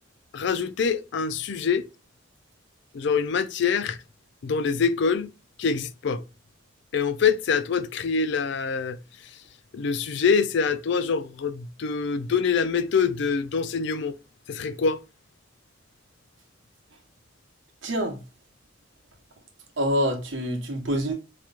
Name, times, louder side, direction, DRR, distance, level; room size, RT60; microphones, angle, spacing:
voice 1, 0.3-1.9 2.9-4.0 4.4-5.3 5.6-6.2 6.9-9.0 9.7-14.1 14.5-15.0, left 5 dB, 65° left, 0.4 m, -25 dB
voice 2, 17.8-18.2 19.8-21.1, equal, 70° right, 1.0 m, -26 dB
4.8 x 2.9 x 2.4 m
head